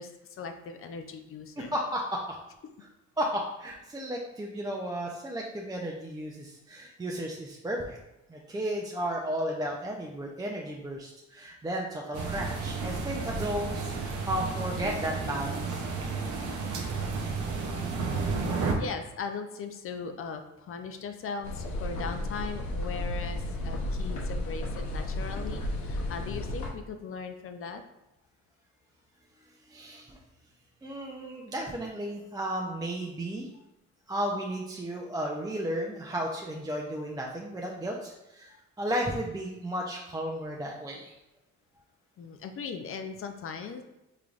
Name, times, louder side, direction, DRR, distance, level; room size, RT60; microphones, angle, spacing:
voice 1, 0.0-1.7 18.3-27.8 42.2-43.8, left 5 dB, 45° left, 7 dB, 0.4 m, -39 dB
voice 2, 1.6-2.2 3.2-8.0 8.3-15.8 29.7-30.2 30.8-33.5 34.1-41.1, equal, 15° right, -1 dB, 0.4 m, -34 dB
sound 1, 12.1-18.7, right 4 dB, 80° right, 0.7 m, -32 dB
sound 2, 21.4-26.7, left 1 dB, 75° left, 0.7 m, -33 dB
3.7 x 3.2 x 2.4 m, 0.93 s
cardioid pair, 90°, 30 cm